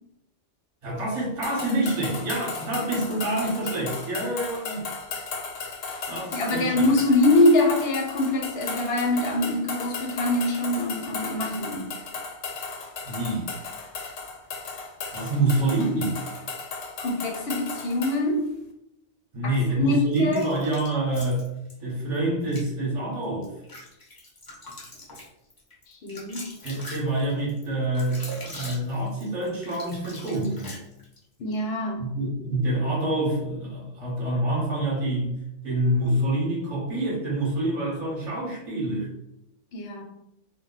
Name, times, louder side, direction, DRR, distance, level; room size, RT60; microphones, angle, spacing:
voice 1, 0.8-4.9 6.1-6.9 13.0-13.5 15.1-16.2 19.3-21.5 21.8-23.5 26.6-30.7 32.0-39.1, right 1 dB, 30° right, -4 dB, 0.9 m, -27 dB
sound 1, 1.4-18.2, left 4 dB, 85° left, 0.9 m, -35 dB
voice 2, 6.3-11.9 17.0-18.5 19.4-20.5 25.9-26.5 31.4-32.1 39.7-40.0, left 1 dB, 60° left, 1 dB, 0.8 m, -24 dB
sound 2, 20.1-21.8 22.4-22.7 23.2-31.2, left 1 dB, 25° left, 0.5 m, -42 dB
2.2 x 2.1 x 3.8 m, 0.84 s
omnidirectional pair, 1.3 m